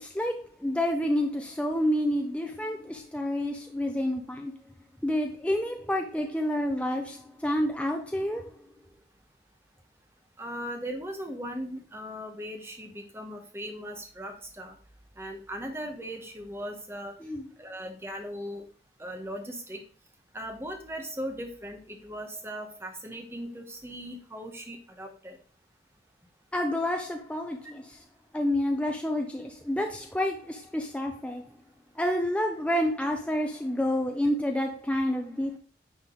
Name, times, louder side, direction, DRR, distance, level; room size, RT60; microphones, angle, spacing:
voice 1, 0.0-4.5 5.0-8.4 17.2-17.5 26.5-28.0 28.3-31.4 32.0-35.6, left 1 dB, 5° left, 3 dB, 0.6 m, -29 dB
voice 2, 10.4-14.7 15.2-17.1 17.6-18.6 19.0-19.8 20.3-25.4, equal, 15° right, 4 dB, 1.0 m, -38 dB
9.9 x 3.7 x 3.8 m, 0.41 s
head